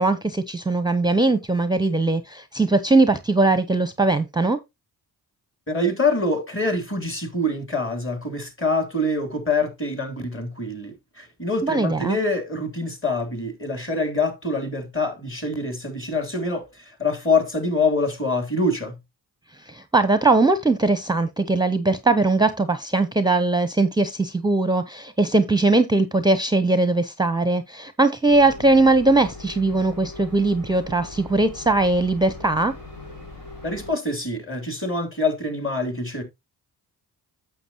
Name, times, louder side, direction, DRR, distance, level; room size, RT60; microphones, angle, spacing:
voice 1, 0.0-4.6 11.6-12.2 19.6-32.7, right 2 dB, 10° right, 0.7 m, -20 dB
voice 2, 5.7-19.0 33.6-36.2, left 2 dB, 30° left, 3.1 m, -25 dB
sound 1, 28.3-33.9, left 2 dB, 85° left, 6.1 m, -40 dB
9.0 x 7.2 x 2.9 m
cardioid pair, 55°, 41 cm